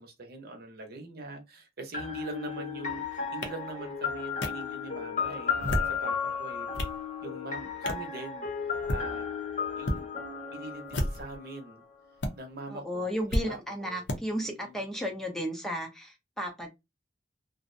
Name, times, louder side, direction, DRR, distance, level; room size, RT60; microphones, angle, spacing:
voice 1, 0.0-6.7 7.2-8.5 8.7-9.3 9.8-10.1 10.5-11.8 12.3-14.1 14.4-14.8, right 2 dB, 55° right, 0.7 m, -42 dB
sound 1, 1.9-11.7, left 6 dB, 45° left, 0.7 m, -34 dB
sound 2, 3.4-3.5 4.4-4.5 5.5-6.0 6.5-7.0 7.8-8.1 8.7-9.0 9.8-10.0 10.8-11.4 12.2-12.3 13.3-13.4 14.1-14.2, equal, 75° left, 0.6 m, -30 dB
voice 2, 12.7-16.7, equal, ahead, 0.5 m, -34 dB
2.4 x 2.0 x 2.5 m
head